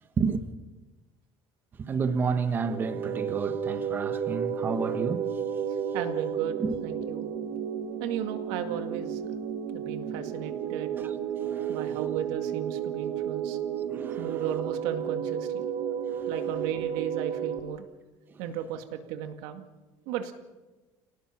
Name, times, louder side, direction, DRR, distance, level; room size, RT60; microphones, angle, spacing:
voice 1, 1.8-5.3 6.6-6.8 11.0-11.1 11.4-11.8 13.9-14.4, right 5 dB, 25° right, 1.1 m, -30 dB
sound 1, 2.6-17.6, right 8 dB, 50° right, 1.7 m, -32 dB
voice 2, 5.9-7.3 8.0-9.3 9.7-10.9 11.7-13.6 14.2-15.7 16.3-17.9 18.4-19.7 20.1-20.3, right 9 dB, 85° right, 2.2 m, -35 dB
28.5 x 18.5 x 6.0 m
cardioid pair, 165°, 9 cm